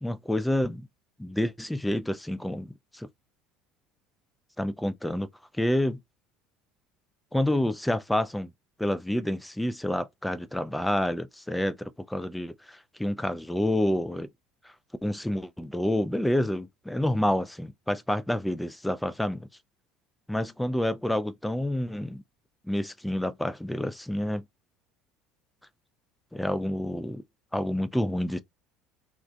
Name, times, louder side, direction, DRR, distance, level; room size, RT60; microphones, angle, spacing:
voice 1, 0.0-0.9 1.2-3.1 4.6-5.3 5.6-6.0 7.3-8.5 8.8-11.7 12.1-14.3 14.6-14.7 15.0-19.5 20.3-22.2 22.7-24.4 26.3-27.2 27.5-28.4, left 1 dB, 5° left, 0.3 m, -28 dB
2.4 x 2.1 x 2.3 m
figure-of-eight pair, 65°, 0 cm